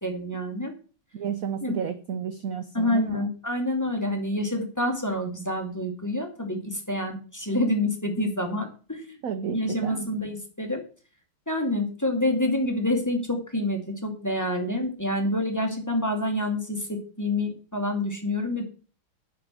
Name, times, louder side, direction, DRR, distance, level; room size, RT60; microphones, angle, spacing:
voice 1, 0.0-0.7 1.6-1.8 2.7-9.2 9.5-10.8 11.5-18.6, left 1 dB, 10° left, 3 dB, 2.1 m, -27 dB
voice 2, 1.1-3.3 9.2-10.1, right 8 dB, 60° right, 10 dB, 0.9 m, -31 dB
9.9 x 6.5 x 7.7 m, 0.38 s
omnidirectional pair, 2.4 m